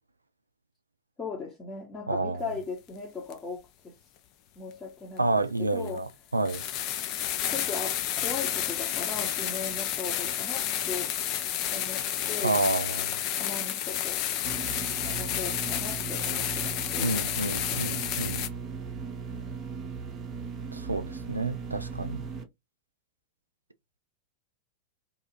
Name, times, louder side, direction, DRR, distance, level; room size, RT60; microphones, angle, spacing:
voice 1, 1.2-3.9 4.6-6.0 7.5-11.1 11.7-12.6 13.4-14.2 15.0-18.0, left 4 dB, 20° left, 0.8 m, -38 dB
voice 2, 2.1-2.5 5.2-6.6 12.4-13.1 17.0-18.4 20.7-22.2, right 2 dB, 80° right, 0.3 m, -29 dB
sound 1, 3.3-3.4 5.2-5.3 5.9-6.0 6.4-18.5, left 11 dB, 40° left, 0.4 m, -31 dB
sound 2, 14.4-22.4, right 5 dB, 30° right, 0.6 m, -37 dB
2.7 x 2.3 x 2.7 m
figure-of-eight pair, 90°, 0 cm